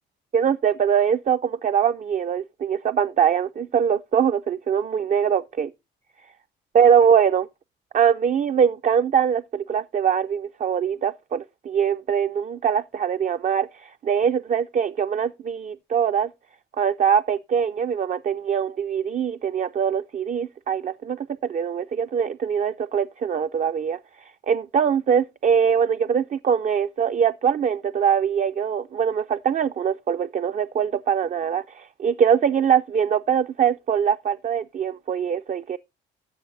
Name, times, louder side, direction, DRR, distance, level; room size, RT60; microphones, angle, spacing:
voice 1, 0.3-5.7 6.7-7.5 7.9-16.3 16.8-35.8, right 7 dB, 40° right, 0.4 m, -22 dB
16.0 x 6.2 x 2.6 m
cardioid pair, 90°, 20 cm